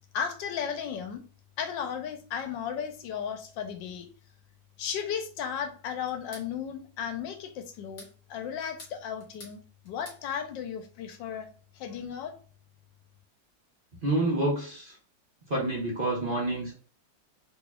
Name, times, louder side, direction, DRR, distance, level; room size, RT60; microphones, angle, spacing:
voice 1, 0.1-1.2 1.6-4.1 4.8-11.5 11.7-12.3, left 7 dB, 85° left, 6 dB, 1.4 m, -35 dB
sound 1, 6.1-6.5 7.7-8.2 8.6-9.6 9.8-10.2, left 2 dB, 45° left, 1.7 m, -49 dB
voice 2, 14.0-14.9 15.5-16.7, right 2 dB, 35° right, -3 dB, 0.9 m, -28 dB
4.2 x 3.1 x 2.3 m, 0.41 s
omnidirectional pair, 2.0 m